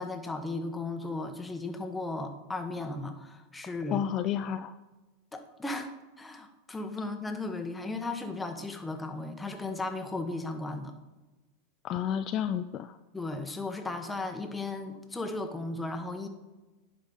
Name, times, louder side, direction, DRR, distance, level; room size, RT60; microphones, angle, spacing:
voice 1, 0.0-4.0 5.3-5.9 6.2-10.9 13.1-16.3, left 2 dB, 10° left, 5 dB, 1.1 m, -36 dB
voice 2, 3.9-4.7 11.8-13.0, left 9 dB, 40° left, 9 dB, 0.3 m, -31 dB
10.5 x 5.1 x 3.9 m, 1.1 s
hypercardioid pair, 105°, 0 cm